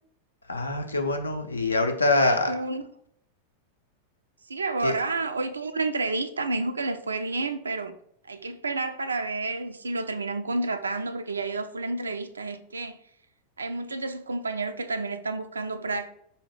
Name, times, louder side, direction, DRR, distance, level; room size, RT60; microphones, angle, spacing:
voice 1, 0.5-2.6 4.8-5.0, left 2 dB, 80° left, 0.5 m, -24 dB
voice 2, 2.2-2.8 4.5-7.9 8.2-13.0 13.6-16.1, right 3 dB, 75° right, 0.3 m, -30 dB
4.2 x 2.7 x 3.1 m
figure-of-eight pair, 90°, 0 cm